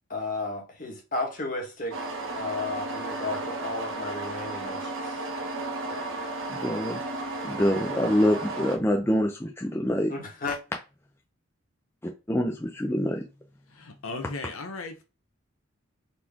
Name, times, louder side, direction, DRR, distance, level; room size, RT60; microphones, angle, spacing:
voice 1, 0.1-2.0 2.3-5.2 5.8-6.1 10.1-10.6, left 3 dB, 40° left, 1.5 m, -33 dB
sound 1, 1.9-8.8, right 2 dB, 65° right, 0.9 m, -34 dB
voice 2, 6.6-7.0 7.4-10.1 12.3-13.2, equal, 10° left, 0.5 m, -25 dB
voice 3, 13.7-15.0, left 3 dB, 80° left, 0.9 m, -37 dB
4.2 x 3.1 x 3.6 m
head